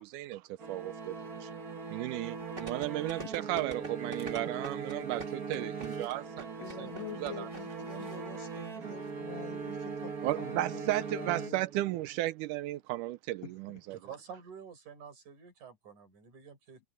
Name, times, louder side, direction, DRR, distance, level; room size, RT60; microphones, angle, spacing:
voice 1, 0.0-1.5 1.9-6.9 7.2-7.5 10.2-14.0, right 16 dB, 85° right, 2.2 m, -35 dB
sound 1, 0.6-12.1, right 5 dB, 35° right, 1.7 m, -40 dB
sound 2, 2.6-7.6 7.9-8.0, right 2 dB, 20° right, 1.7 m, -44 dB
sound 3, 3.8-9.2, left 2 dB, 25° left, 5.4 m, -65 dB
voice 2, 6.6-11.6 13.4-13.8, left 9 dB, 65° left, 2.4 m, -46 dB
voice 3, 13.9-16.8, right 7 dB, 70° right, 6.3 m, -49 dB
omnidirectional pair, 3.6 m